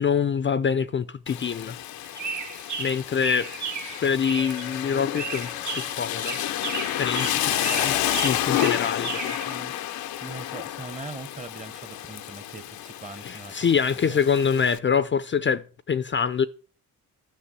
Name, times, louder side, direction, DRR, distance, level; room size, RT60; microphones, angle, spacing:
voice 1, 0.0-1.8 2.8-3.7 3.9-6.4 7.0-9.4 13.2-16.5, left 6 dB, 35° left, 0.5 m, -25 dB
Rain, 1.3-14.8, left 13 dB, 85° left, 0.7 m, -30 dB
sound 1, 2.0-4.8 5.2-9.6, right 6 dB, 55° right, 1.0 m, -34 dB
Chink clink, 4.4-8.5, right 1 dB, 75° right, 1.9 m, -51 dB
voice 2, 9.5-13.6 13.9-14.2, right 3 dB, 20° right, 0.9 m, -41 dB
11.5 x 5.9 x 6.1 m
cardioid pair, 85°, 35 cm